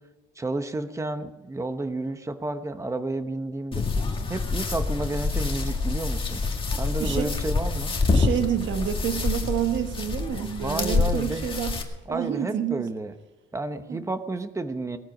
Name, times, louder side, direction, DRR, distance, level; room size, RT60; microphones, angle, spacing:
voice 1, 0.4-3.8 4.3-6.4 6.8-7.9 10.6-11.5 12.1-13.1 13.5-15.0, right 2 dB, 15° right, 9 dB, 1.0 m, -31 dB
sound 1, 3.7-11.8, left 4 dB, 25° left, 2.0 m, -27 dB
voice 2, 7.0-7.3 8.1-11.8 12.1-12.9 13.9-14.0, right 9 dB, 65° right, 7 dB, 1.4 m, -28 dB
19.5 x 14.0 x 5.4 m, 1.1 s
cardioid pair, 160°, 21 cm